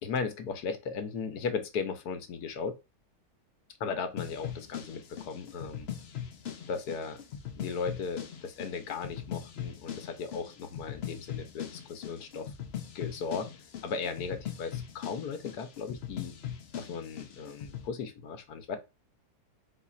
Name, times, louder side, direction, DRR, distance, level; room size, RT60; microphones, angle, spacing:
voice 1, 0.0-2.8 3.8-5.9 6.7-7.2 7.6-12.5 12.9-13.5 13.8-16.3 16.7-18.8, left 5 dB, 75° left, 1.3 m, -36 dB
sound 1, 4.2-17.9, left 9 dB, 55° left, 0.7 m, -41 dB
4.5 x 2.4 x 4.1 m
omnidirectional pair, 1.7 m